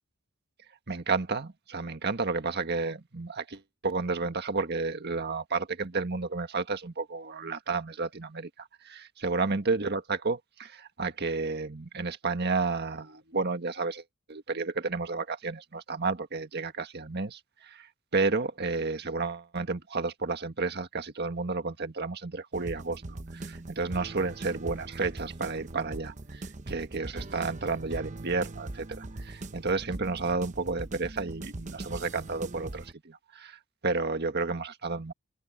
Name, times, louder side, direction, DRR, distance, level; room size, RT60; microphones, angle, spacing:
voice 1, 0.9-35.1, right 4 dB, 55° right, 1.6 m, -32 dB
sound 1, 22.5-32.9, right 2 dB, 35° right, 0.9 m, -41 dB
open air
head